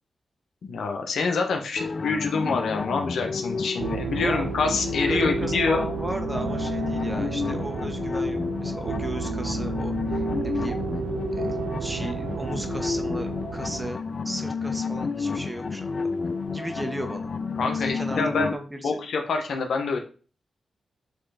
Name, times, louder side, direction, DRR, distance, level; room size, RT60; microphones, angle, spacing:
voice 1, 0.6-5.8 17.6-18.5 18.8-20.0, left 4 dB, 80° left, 3 dB, 1.1 m, -26 dB
sound 1, 1.8-18.5, left 4 dB, 50° left, 0.5 m, -30 dB
sound 2, 3.8-13.9, right 8 dB, 90° right, 0.5 m, -32 dB
voice 2, 4.2-4.5 5.1-10.8 11.4-15.9 16.5-17.3 17.7-18.9, equal, 15° right, 5 dB, 1.6 m, -35 dB
8.1 x 3.3 x 4.2 m, 0.38 s
supercardioid pair, 45°, 0 cm